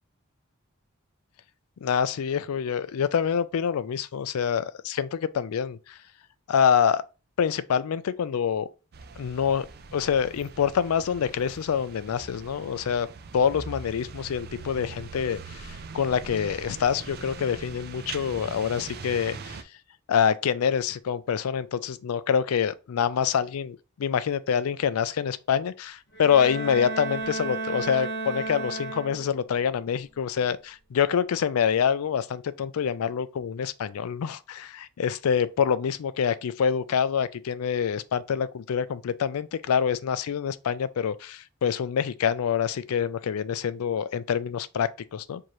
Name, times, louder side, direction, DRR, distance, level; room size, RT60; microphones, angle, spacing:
voice 1, 1.8-6.0 6.5-7.0 7.4-8.7 9.2-9.7 9.9-13.1 13.3-19.6 20.1-45.4, left 7 dB, 90° left, 0.4 m, -26 dB
sound 1, 8.9-19.6, right 4 dB, 45° right, 0.4 m, -42 dB
Bowed string instrument, 26.1-29.5, right 4 dB, 55° left, 1.2 m, -33 dB
4.7 x 2.7 x 3.0 m
head